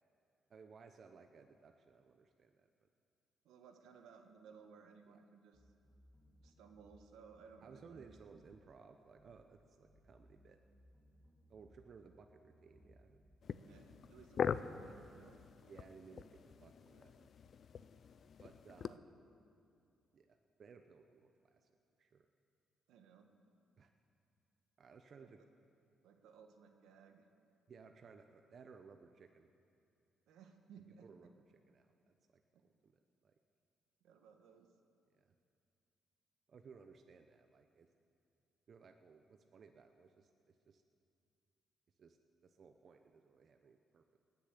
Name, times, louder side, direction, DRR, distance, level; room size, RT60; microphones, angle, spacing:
voice 1, 0.5-2.7 5.1-5.2 7.6-10.6 11.5-13.2 14.5-14.6 15.6-17.3 18.4-19.0 20.1-21.7 22.0-22.3 23.8-23.9 24.8-25.4 27.7-29.5 31.0-31.9 32.3-32.4 32.8-32.9 33.2-33.3 35.1-35.2 36.5-37.9 38.7-40.8 42.0-42.2 42.4-44.2, right 5 dB, 50° right, 6 dB, 0.7 m, -60 dB
voice 2, 3.4-5.7 6.4-8.3 13.6-15.4 18.8-19.0 22.9-23.3 25.2-25.3 26.0-27.2 30.3-31.3 34.0-34.7, right 6 dB, 85° right, 5 dB, 1.3 m, -60 dB
sound 1, 5.5-7.1 7.3-8.6 9.1-9.4 9.7-11.9 12.1-13.4 13.9-14.2 14.5-15.1, equal, 5° right, 3.3 m, -67 dB
sound 2, 13.4-19.0, left 7 dB, 55° left, 0.4 m, -43 dB
19.5 x 7.0 x 8.3 m, 2.5 s
cardioid pair, 90°, 0 cm